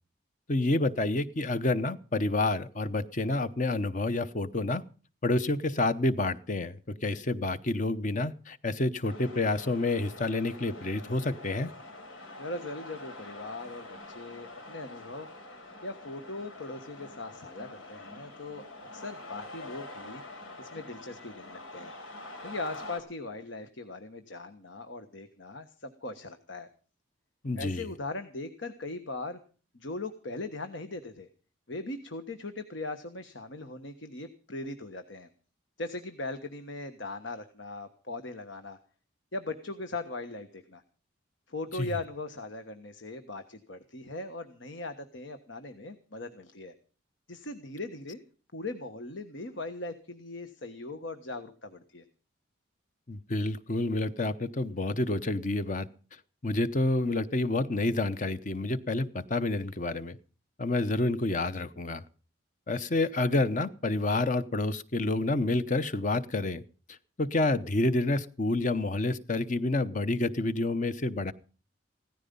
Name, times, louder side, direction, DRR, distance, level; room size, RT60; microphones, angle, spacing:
voice 1, 0.5-4.8 5.2-11.7 27.4-27.9 41.7-41.9 53.1-55.9 56.4-60.2 60.6-62.0 62.7-66.6 66.9-71.3, left 2 dB, 40° left, 13 dB, 0.8 m, -29 dB
sound 1, 9.0-23.0, left 2 dB, 90° left, 4.2 m, -46 dB
voice 2, 12.4-15.3 15.8-18.6 18.9-20.2 20.6-21.9 22.4-26.7 27.6-29.4 29.7-31.3 31.7-35.3 35.8-38.8 39.3-40.8 41.5-46.7 47.3-48.2 48.5-52.0, left 2 dB, 70° left, 9 dB, 1.4 m, -39 dB
17.0 x 14.5 x 5.4 m, 0.39 s
head